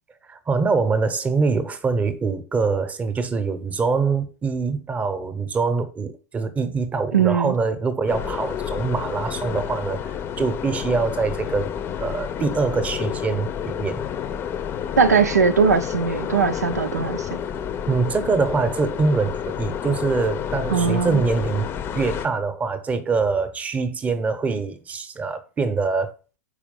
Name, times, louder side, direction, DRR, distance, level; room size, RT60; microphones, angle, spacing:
voice 1, 0.3-11.7 12.0-14.0 17.9-21.7 21.9-26.1, right 4 dB, 15° right, 0.9 m, -24 dB
voice 2, 7.1-7.5 15.0-17.4 20.7-21.2, right 6 dB, 85° right, 0.6 m, -20 dB
sound 1, 8.1-22.3, left 8 dB, 25° left, 0.6 m, -30 dB
4.9 x 4.7 x 5.3 m
hypercardioid pair, 105°, 9 cm